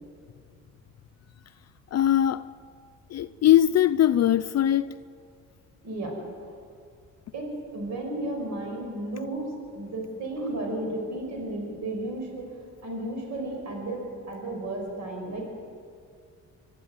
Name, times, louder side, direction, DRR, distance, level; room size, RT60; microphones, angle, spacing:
voice 1, 1.9-2.4 3.1-5.0, left 11 dB, 60° left, 0.6 m, -21 dB
voice 2, 5.8-6.2 7.3-12.4 12.8-14.0 14.3-15.4, right 1 dB, 65° right, 5.6 m, -33 dB
26.0 x 12.5 x 9.5 m
cardioid pair, 90°, 30 cm